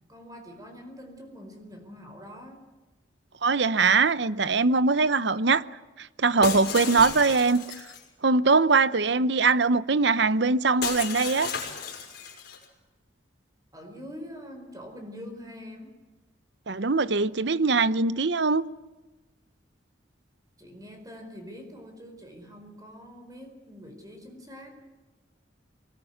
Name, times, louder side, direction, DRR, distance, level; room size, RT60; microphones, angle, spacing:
voice 1, 0.1-2.6 13.7-16.0 20.6-24.8, equal, 20° right, 4.7 m, -44 dB
voice 2, 3.4-5.6 6.0-7.6 8.2-11.5 16.7-18.7, right 4 dB, 60° right, 0.8 m, -22 dB
Shatter, 6.4-8.0 10.8-12.6, left 6 dB, 55° left, 5.5 m, -33 dB
24.0 x 20.0 x 9.3 m
head